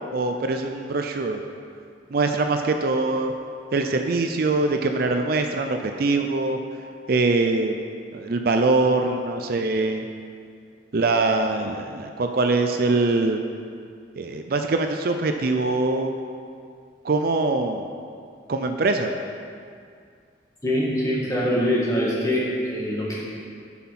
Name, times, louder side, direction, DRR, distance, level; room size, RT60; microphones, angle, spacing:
voice 1, 0.1-1.4 2.1-3.3 3.7-6.6 7.1-7.8 8.1-10.1 10.9-13.4 14.2-16.1 17.0-17.9 18.5-19.1, right 3 dB, 55° right, 5 dB, 0.5 m, -23 dB
voice 2, 20.6-23.2, equal, 20° left, -6 dB, 1.8 m, -23 dB
8.4 x 5.8 x 5.8 m, 2.3 s
head